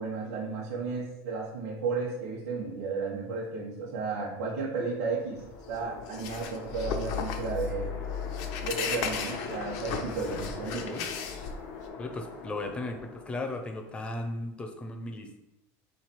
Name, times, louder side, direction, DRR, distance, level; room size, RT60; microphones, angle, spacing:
voice 1, 0.0-7.9 8.6-11.0, right 4 dB, 85° right, -4 dB, 1.0 m, -33 dB
sound 1, 4.9-14.0, left 5 dB, 80° left, 0.9 m, -42 dB
sound 2, 5.4-11.9, left 7 dB, 60° left, 0.6 m, -35 dB
voice 2, 10.6-11.1 12.0-15.4, left 2 dB, 15° left, 5 dB, 0.5 m, -36 dB
3.7 x 3.3 x 4.4 m, 0.89 s
supercardioid pair, 145°, 7 cm